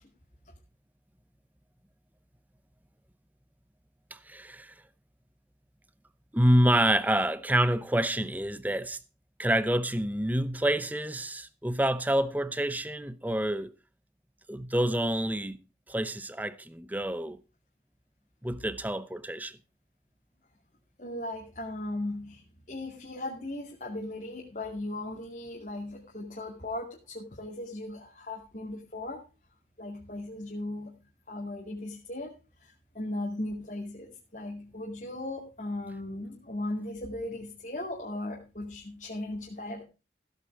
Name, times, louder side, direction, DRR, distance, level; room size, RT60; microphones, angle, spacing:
voice 1, 4.1-4.7 6.3-9.0 9.4-13.7 14.5-15.6 15.9-17.4 18.4-19.6, right 1 dB, 10° right, 0.8 m, -27 dB
voice 2, 21.0-29.2 29.8-31.0 31.3-32.3 32.6-39.8, left 1 dB, 45° left, 2.4 m, -37 dB
15.5 x 8.3 x 4.7 m
head